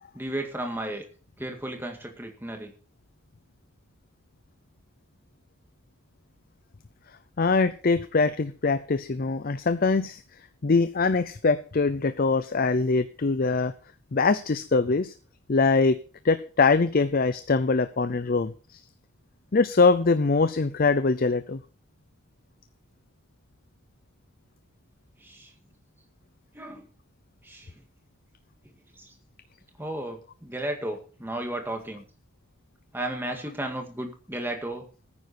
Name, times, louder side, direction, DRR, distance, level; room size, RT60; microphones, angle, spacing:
voice 1, 0.1-1.0 1.4-2.7 25.2-25.5 26.5-26.9 27.4-27.7 29.0-29.1 29.8-32.0 32.9-34.9, right 1 dB, 10° right, 3 dB, 2.0 m, -34 dB
voice 2, 7.4-13.7 14.1-15.1 15.5-16.0 16.2-18.8 19.5-21.6, left 4 dB, 40° left, 12 dB, 0.5 m, -23 dB
14.0 x 9.9 x 4.3 m, 0.37 s
head